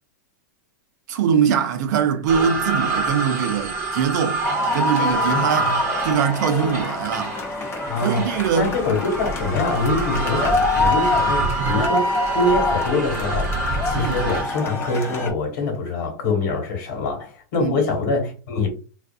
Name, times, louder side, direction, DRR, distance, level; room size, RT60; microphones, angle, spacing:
voice 1, 1.1-4.4 4.7-5.7 6.0-7.4 8.0-8.8 13.9-14.1 17.6-17.8, right 7 dB, 65° right, 0.5 m, -22 dB
sound 1, 2.3-14.6, right 3 dB, 30° right, 0.9 m, -27 dB
sound 2, 4.4-15.3, left 2 dB, 25° left, 0.6 m, -25 dB
voice 2, 5.3-5.8 7.8-18.7, left 3 dB, 65° left, 1.4 m, -24 dB
2.5 x 2.3 x 2.4 m
hypercardioid pair, 130°, 10 cm